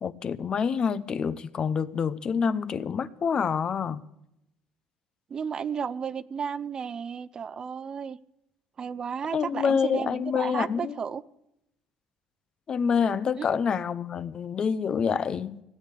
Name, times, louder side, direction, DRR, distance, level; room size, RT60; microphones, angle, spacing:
voice 1, 0.0-4.0 9.3-11.0 12.7-15.6, left 6 dB, 35° left, 0.6 m, -27 dB
voice 2, 5.3-8.2 8.8-11.2 13.4-13.5, right 6 dB, 30° right, 0.4 m, -33 dB
17.0 x 8.6 x 8.2 m
cardioid pair, 140°, 2 cm